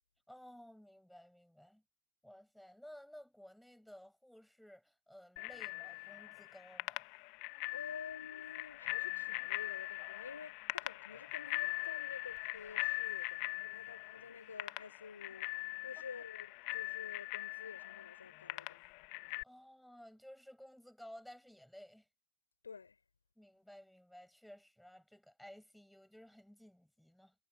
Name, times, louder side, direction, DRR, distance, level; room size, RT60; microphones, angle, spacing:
voice 1, 0.3-1.8 2.2-7.1 16.2-16.3 19.4-22.1 23.4-27.3, equal, ahead, 7.1 m, -56 dB
Bicycle bell, 5.4-19.4, left 34 dB, 45° left, 1.6 m, -42 dB
voice 2, 7.7-18.8 22.6-23.0, left 5 dB, 75° left, 5.3 m, -50 dB
figure-of-eight pair, 90°, 0 cm